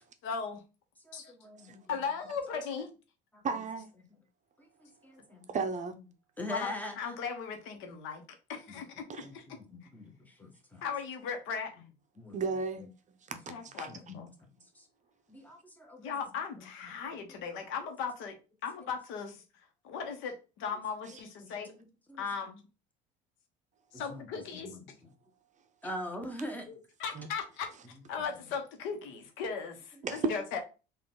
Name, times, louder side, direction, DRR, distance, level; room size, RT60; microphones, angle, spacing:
voice 1, 0.2-0.6 1.1-1.3 1.9-2.9 6.5-6.7 7.0-8.2 8.5-9.4 10.8-11.8 13.5-14.3 16.0-18.3 18.6-19.4 19.8-21.7 22.2-22.6 23.9-24.8 26.7-27.7 28.1-30.6, left 6 dB, 70° left, 1.0 m, -37 dB
voice 2, 1.1-1.8 3.3-3.4 5.0-5.5 6.4-7.0 9.2-10.8 12.2-12.4 12.8-12.9 13.9-14.3 14.8-14.9 15.3-16.1 16.9-17.1 22.1-22.3 24.1-24.2 24.5-24.8 25.8-26.7, left 1 dB, 10° left, 1.1 m, -42 dB
voice 3, 3.4-3.9 5.5-5.9 9.1-9.3 12.3-12.8 13.3-13.9 27.2-27.3 30.0-30.3, right 4 dB, 35° right, 0.6 m, -33 dB
3.7 x 2.5 x 3.8 m
supercardioid pair, 85°, 21 cm